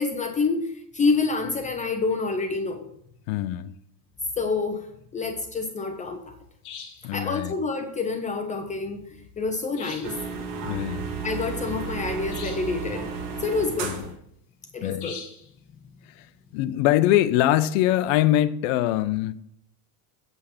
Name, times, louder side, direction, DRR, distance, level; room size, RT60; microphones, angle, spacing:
voice 1, 0.0-2.9 4.4-4.9 5.1-6.3 7.1-9.0 9.4-10.2 11.2-13.1 13.4-14.0 14.7-15.1, left 4 dB, 15° left, 0.5 m, -27 dB
voice 2, 3.3-3.7 7.0-7.5 10.6-11.1 13.8-14.0 14.8-15.1 16.2-16.3 16.5-19.3, left 13 dB, 60° left, 0.7 m, -23 dB
sound 1, 6.6-7.1 9.7-10.3 12.3-12.8 15.0-15.5, left 6 dB, 40° left, 1.9 m, -41 dB
sound 2, 10.0-14.2, right 5 dB, 50° right, 1.7 m, -33 dB
8.3 x 5.6 x 5.8 m
supercardioid pair, 155°, 47 cm